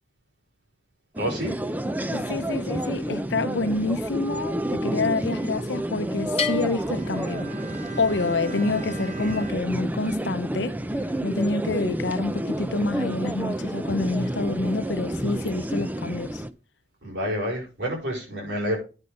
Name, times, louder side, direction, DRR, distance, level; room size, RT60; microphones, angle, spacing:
sound 1, 1.2-16.5, right 1 dB, 10° right, 0.5 m, -30 dB
voice 1, 1.2-1.6 17.0-18.8, equal, 85° right, 5.2 m, -28 dB
voice 2, 2.1-7.5 8.0-10.7 11.2-16.4, left 3 dB, 80° left, 0.7 m, -27 dB
Bell, 6.4-8.1, left 8 dB, 35° left, 1.1 m, -34 dB
Bowed string instrument, 6.5-11.0 11.2-11.4, right 4 dB, 40° right, 2.2 m, -40 dB
9.8 x 5.7 x 5.2 m
head